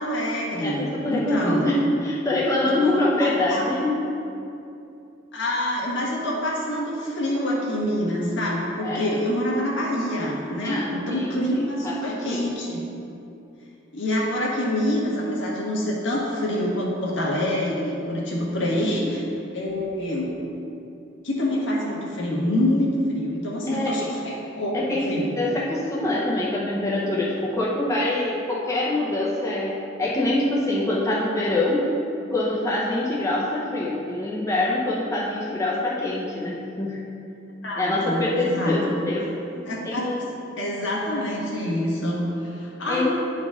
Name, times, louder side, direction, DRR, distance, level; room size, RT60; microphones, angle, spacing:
voice 1, 0.0-1.7 2.7-3.6 5.3-12.8 13.9-19.2 19.5-20.4 21.2-25.4 37.6-38.9 39.7-40.1 40.6-43.1, left 1 dB, 65° left, -4 dB, 1.4 m, -26 dB
voice 2, 0.6-4.0 8.8-9.2 10.6-12.5 18.8-19.2 23.7-24.0 24.7-31.9 32.3-37.0 37.7-39.6 39.8-40.3 42.9-43.1, left 1 dB, 15° left, -5 dB, 0.8 m, -25 dB
10.0 x 4.1 x 3.6 m, 2.8 s
head